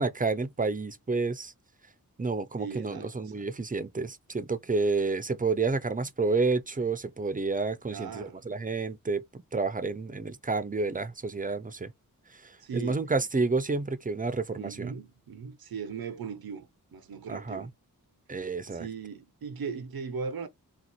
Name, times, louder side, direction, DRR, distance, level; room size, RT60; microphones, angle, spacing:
voice 1, 0.0-1.5 2.2-11.9 12.3-14.9 17.3-17.7 18.3-18.9, right 3 dB, 25° right, 0.6 m, -30 dB
voice 2, 2.6-3.5 7.9-8.5 12.6-13.1 14.5-17.7 18.7-20.5, right 6 dB, 90° right, 0.8 m, -38 dB
4.0 x 2.4 x 4.4 m
wide cardioid pair, 95°, 35 cm